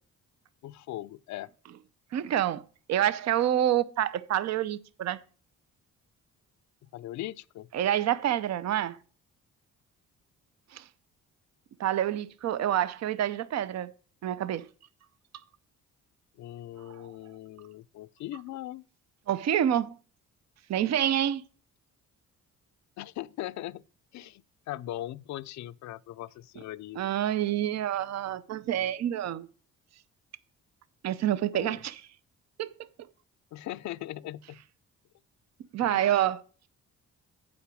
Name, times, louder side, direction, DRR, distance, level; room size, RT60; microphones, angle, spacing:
voice 1, 0.6-1.5 6.8-7.7 16.4-18.8 23.0-23.8 24.1-27.0 31.5-31.8 33.5-34.6 35.8-36.2, left 14 dB, 70° left, 0.5 m, -40 dB
voice 2, 2.1-5.2 7.7-9.0 10.7-10.8 11.8-13.9 14.2-14.7 19.3-20.0 20.7-21.4 27.0-29.5 31.0-32.0 32.6-32.7 35.7-36.4, right 11 dB, 60° right, 0.7 m, -27 dB
8.6 x 5.2 x 6.2 m
cardioid pair, 90°, 30 cm